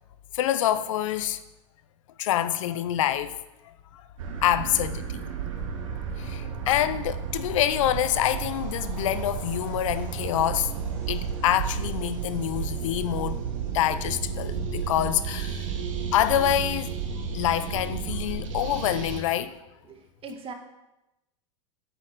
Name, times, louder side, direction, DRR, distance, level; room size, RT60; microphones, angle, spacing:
voice 1, 0.3-1.4 2.2-3.4 3.9-4.0 4.4-5.2 6.2-10.7 11.1-13.4 13.7-15.7 16.1-16.9 17.3-19.6, left 12 dB, 75° left, 0.8 m, -26 dB
sound 1, 4.2-19.2, right 6 dB, 80° right, 1.8 m, -32 dB
voice 2, 19.8-20.5, right 4 dB, 35° right, 2.0 m, -40 dB
8.5 x 7.8 x 6.7 m
hypercardioid pair, 105°, 16 cm